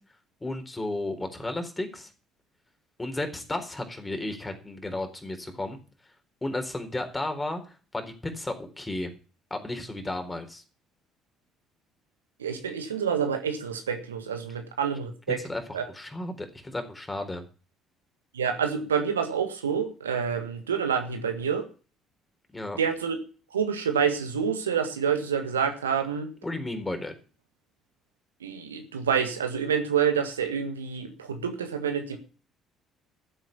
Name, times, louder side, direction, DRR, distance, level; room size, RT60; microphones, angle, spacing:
voice 1, 0.4-2.1 3.0-5.8 6.4-9.1 9.5-10.6 15.3-15.6 15.9-17.4 22.5-22.8 26.4-27.1, left 2 dB, 15° left, 6 dB, 4.0 m, -33 dB
voice 2, 12.4-15.4 15.7-15.8 18.3-21.6 22.8-23.2 23.5-26.3 28.4-32.2, right 7 dB, 85° right, 6 dB, 1.6 m, -27 dB
14.0 x 7.9 x 7.1 m, 0.37 s
figure-of-eight pair, 50°, 0 cm